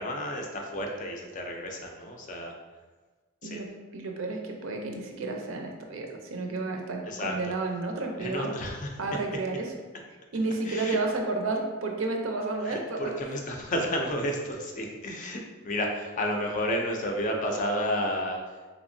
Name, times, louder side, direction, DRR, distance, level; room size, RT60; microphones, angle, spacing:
voice 1, 0.0-2.5 3.4-3.6 7.1-7.3 8.2-8.9 10.4-11.0 12.6-15.4 15.6-18.4, equal, 35° left, 1 dB, 0.4 m, -31 dB
voice 2, 3.4-8.5 9.0-9.7 10.3-13.0, right 3 dB, 65° right, 2 dB, 0.5 m, -31 dB
3.4 x 3.0 x 2.6 m, 1.3 s
head